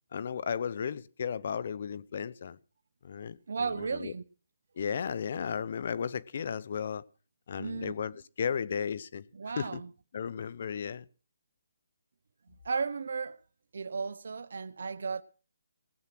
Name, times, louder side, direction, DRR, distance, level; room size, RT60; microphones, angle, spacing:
voice 1, 0.1-2.6 3.0-4.1 4.8-7.0 7.5-9.2 9.6-9.8 10.1-11.0, left 7 dB, 50° left, 0.8 m, -34 dB
voice 2, 3.5-4.2 7.6-7.9 9.3-9.9 12.6-13.4 13.7-15.2, right 5 dB, 70° right, 0.9 m, -34 dB
18.5 x 7.4 x 6.1 m
hypercardioid pair, 160°, 0 cm